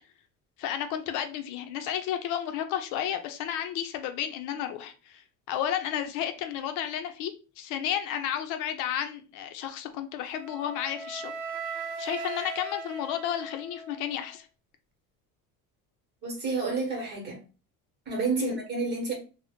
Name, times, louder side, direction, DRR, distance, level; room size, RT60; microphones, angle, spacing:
voice 1, 0.6-11.3 11.6-14.5 18.4-18.6, left 10 dB, 70° left, 0.5 m, -32 dB
Wind instrument woodwind instrument, 10.3-14.4, right 4 dB, 70° right, 0.5 m, -39 dB
voice 2, 16.2-17.4 18.1-19.1, right 4 dB, 35° right, 1.0 m, -30 dB
2.6 x 2.1 x 3.5 m
cardioid pair, 180°, 32 cm